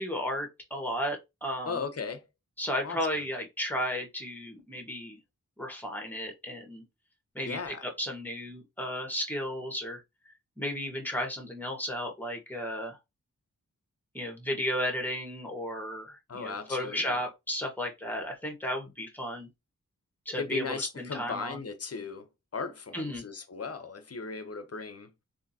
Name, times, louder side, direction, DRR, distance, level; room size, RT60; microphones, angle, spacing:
voice 1, 0.0-1.8 2.6-5.2 5.6-6.8 7.3-10.0 10.6-13.0 14.1-19.5 20.2-21.6 22.9-23.2, equal, 5° left, 1.6 m, -34 dB
voice 2, 1.7-2.2 2.8-3.0 7.4-7.8 16.3-17.1 20.4-22.3 22.5-25.1, left 4 dB, 45° left, 0.8 m, -37 dB
3.6 x 2.9 x 2.8 m
cardioid pair, 40°, 33 cm